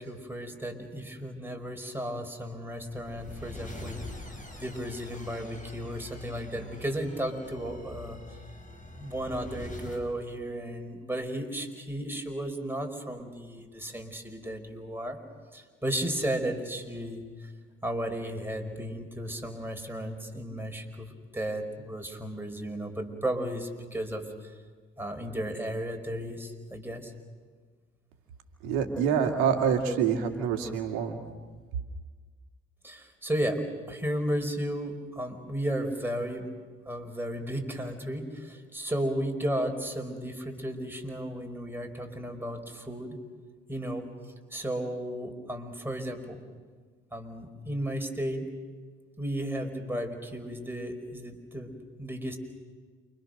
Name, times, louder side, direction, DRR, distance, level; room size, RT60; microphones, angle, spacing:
voice 1, 0.0-4.0 4.6-8.2 9.0-15.2 15.5-17.5 17.8-24.5 25.0-27.1 32.8-33.6 33.9-36.5 36.8-43.2 43.7-44.1 44.5-46.4 47.1-48.5 49.2-52.4, right 1 dB, 5° right, 3 dB, 5.0 m, -34 dB
sound 1, 2.6-10.0, left 1 dB, 25° left, 7.5 m, -44 dB
voice 2, 28.6-31.2, right 7 dB, 80° right, 4 dB, 2.4 m, -26 dB
29.0 x 25.0 x 6.7 m, 1.5 s
hypercardioid pair, 55°, 29 cm